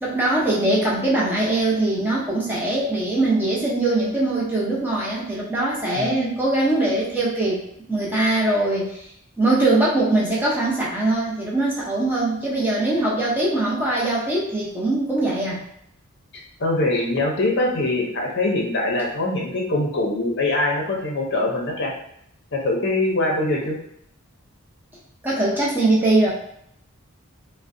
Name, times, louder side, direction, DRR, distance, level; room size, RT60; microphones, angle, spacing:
voice 1, 0.0-7.6 7.9-9.1 9.4-15.6 25.2-26.3, right 2 dB, 10° right, -6 dB, 0.7 m, -21 dB
voice 2, 5.9-6.4 16.6-21.9 22.5-23.8, left 2 dB, 50° left, -1 dB, 0.7 m, -23 dB
3.7 x 2.1 x 2.6 m, 0.74 s
head